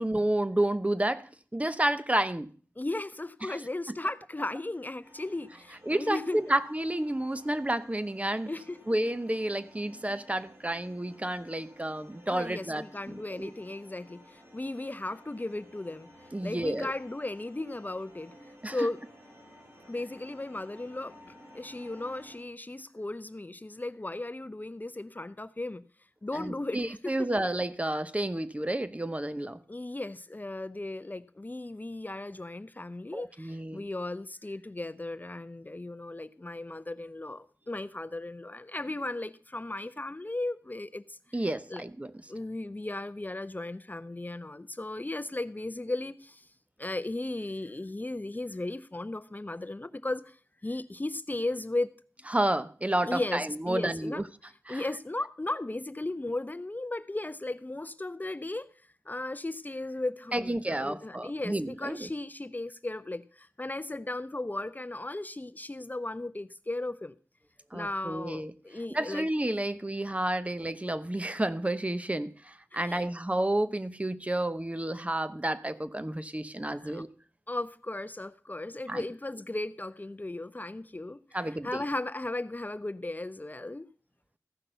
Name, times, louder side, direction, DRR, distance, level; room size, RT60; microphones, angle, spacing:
voice 1, 0.0-2.5 3.5-3.6 5.9-8.5 8.9-13.5 16.3-16.9 18.6-18.8 26.3-29.6 33.1-33.8 41.3-42.1 52.3-54.2 54.7-54.9 60.3-62.1 67.7-68.5 68.9-77.1 78.9-79.0 81.3-81.8, right 1 dB, 20° right, 13 dB, 0.8 m, -30 dB
voice 2, 2.8-6.5 8.5-8.8 12.2-16.1 16.4-18.3 18.6-19.0 19.9-21.1 21.5-25.8 26.2-27.3 29.7-41.8 42.3-46.5 46.8-50.4 50.6-51.9 53.0-54.3 54.7-58.7 59.1-67.1 67.7-69.3 72.7-73.1 76.8-77.0 77.5-83.9, left 2 dB, 30° left, 14 dB, 0.6 m, -36 dB
sound 1, 5.0-22.4, equal, 45° right, 6.0 m, -55 dB
15.0 x 5.9 x 6.8 m, 0.43 s
cardioid pair, 40°, 6 cm